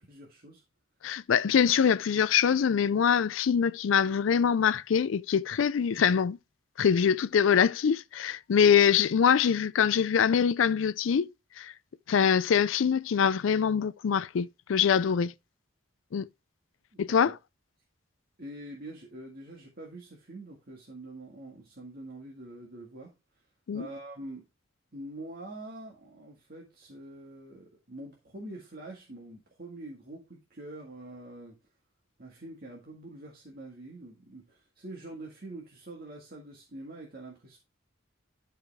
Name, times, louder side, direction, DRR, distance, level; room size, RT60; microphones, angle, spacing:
voice 1, 0.1-0.6 16.9-17.3 18.4-23.1 23.7-24.4 24.9-31.6 32.2-37.6, right 1 dB, 50° right, 1.9 m, -45 dB
voice 2, 1.0-6.4 6.8-11.3 11.6-11.7 12.1-15.3 16.1-16.3 17.0-17.4 23.7-23.9, left 7 dB, 75° left, 0.4 m, -24 dB
12.0 x 5.0 x 3.5 m
head